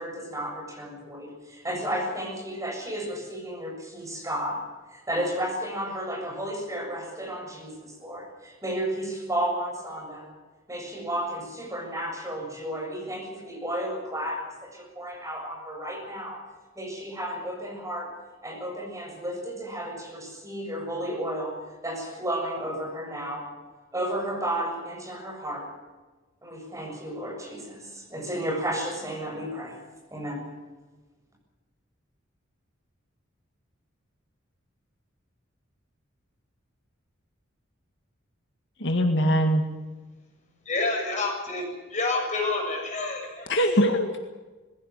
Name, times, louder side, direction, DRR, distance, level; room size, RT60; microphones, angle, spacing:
voice 1, 0.0-10.3 10.7-16.4 16.8-23.5 23.9-25.8 26.4-29.8 30.1-30.6, right 1 dB, 15° right, 0 dB, 7.5 m, -33 dB
voice 2, 38.8-39.6 43.5-44.2, equal, 60° left, 4 dB, 2.0 m, -22 dB
voice 3, 40.7-43.6, left 3 dB, 35° left, 1 dB, 7.1 m, -28 dB
21.0 x 16.0 x 9.4 m, 1.2 s
head